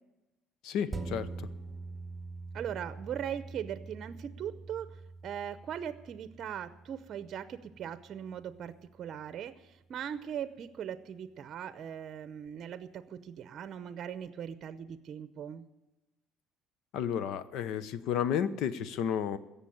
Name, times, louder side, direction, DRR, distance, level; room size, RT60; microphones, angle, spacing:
voice 1, 0.6-1.5 16.9-19.4, left 8 dB, 75° left, 14 dB, 0.8 m, -32 dB
sound 1, 0.9-9.7 10.2-10.3, right 3 dB, 5° right, 2.0 m, -45 dB
voice 2, 2.5-4.9 5.2-15.6, right 9 dB, 50° right, 12 dB, 0.7 m, -40 dB
16.5 x 6.9 x 8.6 m, 1.0 s
cardioid pair, 115°, 0 cm